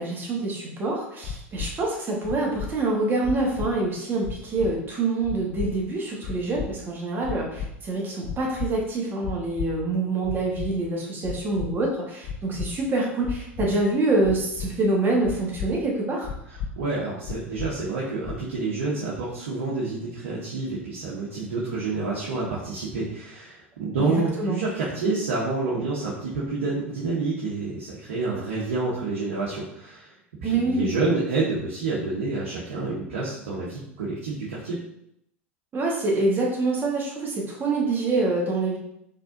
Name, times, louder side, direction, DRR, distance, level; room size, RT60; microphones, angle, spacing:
voice 1, 0.0-16.3 24.0-24.6 30.4-30.9 35.7-38.8, right 2 dB, 30° right, -2 dB, 1.4 m, -26 dB
sound 1, 1.2-1.7 2.2-2.7 3.2-3.7 4.2-4.7 5.2-5.7 6.2-6.7 7.2-7.7 8.2-8.7 9.2-9.7 10.2-10.7 11.2-11.7 12.2-12.7 13.2-13.7 14.2-14.7 15.2-15.7 16.2-16.7 17.2-17.7 18.2-18.6, left 7 dB, 55° left, 0.4 m, -32 dB
voice 2, 16.7-30.1 30.4-34.8, right 3 dB, 75° right, -6 dB, 0.9 m, -28 dB
4.3 x 3.3 x 2.6 m, 0.77 s
hypercardioid pair, 85°, 7 cm